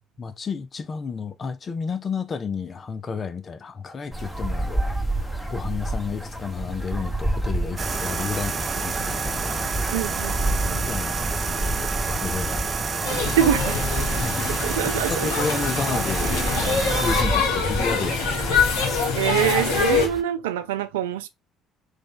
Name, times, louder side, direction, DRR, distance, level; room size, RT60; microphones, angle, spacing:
voice 1, 0.2-5.0 5.5-9.7 10.7-12.6 14.1-14.7 15.1-19.0, left 5 dB, 40° left, 0.6 m, -32 dB
sound 1, 4.1-20.2, right 1 dB, ahead, 1.0 m, -30 dB
sound 2, 7.8-17.2, right 4 dB, 35° right, 0.6 m, -28 dB
voice 2, 9.9-10.9 13.4-13.8 14.6-15.3 15.5-15.6 19.1-21.3, right 11 dB, 80° right, 0.3 m, -25 dB
sound 3, 13.0-20.1, left 5 dB, 75° left, 1.0 m, -25 dB
3.3 x 2.5 x 3.6 m
hypercardioid pair, 50°, 0 cm